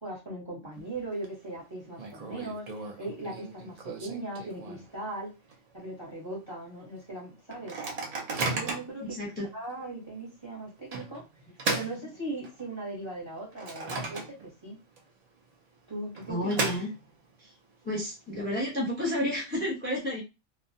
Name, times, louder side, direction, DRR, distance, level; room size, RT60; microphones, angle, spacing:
voice 1, 0.0-5.3 5.7-7.8 8.4-9.2 9.5-11.2 11.7-14.8 15.9-16.6, right 2 dB, 25° right, -4 dB, 0.8 m, -39 dB
Microwave oven, 0.7-1.3 1.5-1.6 2.0-5.1 5.5-5.6 5.8-6.2 6.7-6.8 7.5-9.0 9.6-9.8 10.9-12.7 13.2-14.7 15.0-15.1 15.9-17.3, right 3 dB, 60° right, 0.4 m, -35 dB
voice 2, 9.0-9.5 16.3-16.9 17.4-17.5 17.8-20.2, left 1 dB, 10° left, -3 dB, 0.8 m, -31 dB
2.3 x 2.1 x 2.6 m, 0.26 s
omnidirectional pair, 1.3 m